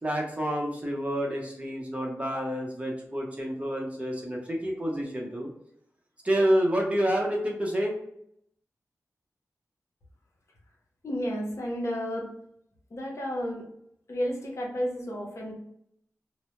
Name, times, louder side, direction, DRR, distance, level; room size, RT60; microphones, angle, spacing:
voice 1, 0.0-5.5 6.2-7.9, equal, 25° right, -1 dB, 0.7 m, -28 dB
voice 2, 11.0-12.3 12.9-13.6 14.1-15.5, equal, 60° left, -1 dB, 0.7 m, -32 dB
2.1 x 2.0 x 2.9 m, 0.73 s
cardioid pair, 60°, 6 cm